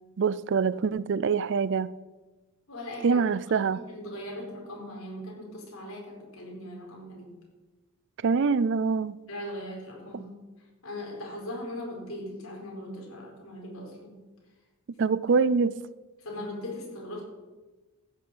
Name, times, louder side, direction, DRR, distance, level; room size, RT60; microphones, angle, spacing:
voice 1, 0.2-1.9 3.0-3.8 8.2-9.2 15.0-15.8, right 5 dB, 55° right, 0.4 m, -24 dB
voice 2, 2.7-7.3 9.3-10.4 10.8-14.2 16.2-17.2, left 1 dB, 65° left, 4.5 m, -39 dB
14.5 x 7.0 x 8.0 m
head